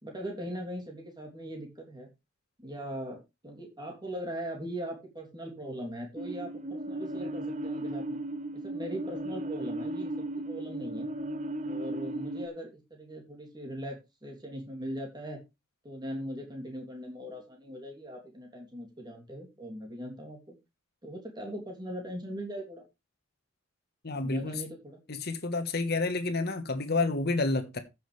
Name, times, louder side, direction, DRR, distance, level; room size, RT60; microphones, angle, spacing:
voice 1, 0.0-2.1 2.6-8.2 8.5-11.1 11.7-15.4 15.8-20.5 21.0-22.8 24.2-25.0, equal, 20° right, 3.0 m, -40 dB
sound 1, 6.2-12.5, right 1 dB, 40° right, 0.9 m, -36 dB
voice 2, 24.0-24.6 25.1-27.8, left 3 dB, 55° left, 1.3 m, -29 dB
15.0 x 6.3 x 3.3 m
head